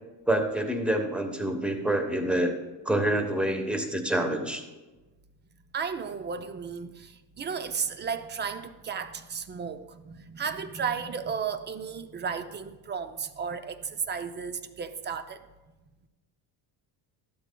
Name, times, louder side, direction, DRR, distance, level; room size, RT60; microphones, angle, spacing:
voice 1, 0.3-2.6 2.8-4.6, right 1 dB, ahead, 1.0 m, -27 dB
voice 2, 5.7-15.4, right 6 dB, 25° right, 0.4 m, -34 dB
14.0 x 12.0 x 2.2 m
cardioid pair, 135°, 47 cm